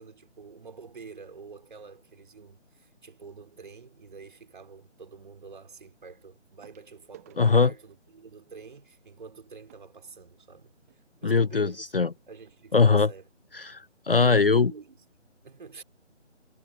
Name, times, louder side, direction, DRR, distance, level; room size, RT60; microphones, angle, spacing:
voice 1, 0.0-13.3 14.1-15.8, right 5 dB, 40° right, 4.4 m, -47 dB
sound 1, 6.6-11.0 11.8-11.9 12.1-12.3 12.8-12.9, right 13 dB, 15° right, 1.9 m, -59 dB
voice 2, 7.4-7.7 11.2-12.1 12.7-13.1 13.6-14.7, left 4 dB, 50° left, 0.5 m, -21 dB
figure-of-eight pair, 160°, 36 cm